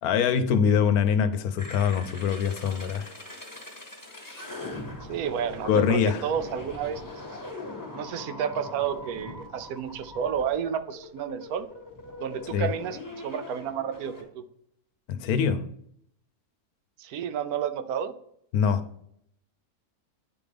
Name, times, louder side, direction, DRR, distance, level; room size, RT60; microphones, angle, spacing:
voice 1, 0.0-3.1 5.6-6.2 12.5-12.7 15.1-15.6 18.5-18.8, left 7 dB, 80° left, 1.1 m, -24 dB
sound 1, 1.6-14.2, left 2 dB, 15° left, 1.2 m, -41 dB
voice 2, 5.1-7.0 7.9-11.7 12.2-14.4 17.0-18.1, right 8 dB, 80° right, 1.0 m, -31 dB
9.2 x 3.5 x 3.3 m
omnidirectional pair, 1.6 m